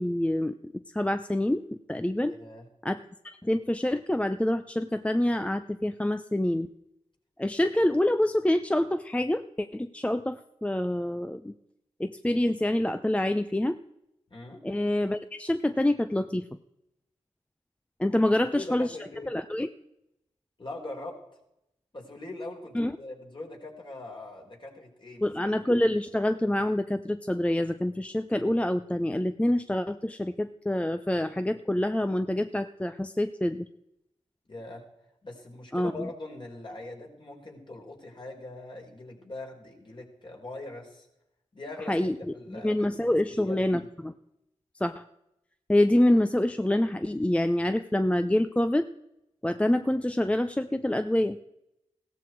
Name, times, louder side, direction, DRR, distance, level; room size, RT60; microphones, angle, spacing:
voice 1, 0.0-1.6 1.9-2.4 2.8-6.7 7.4-11.5 12.0-13.8 14.6-16.5 18.0-19.0 19.3-19.7 22.7-22.9 25.2-33.7 35.7-36.1 41.9-42.2 42.5-44.1 44.8-45.0 45.7-48.9 49.4-51.4, left 1 dB, 10° left, 10 dB, 0.7 m, -26 dB
voice 2, 2.3-2.7 14.3-14.6 18.1-18.2 18.5-19.3 20.6-21.2 21.9-25.3 34.4-34.8 35.2-41.1 41.5-43.9, left 2 dB, 40° left, 0 dB, 4.9 m, -42 dB
16.0 x 13.5 x 4.7 m, 0.85 s
cardioid pair, 50°, 12 cm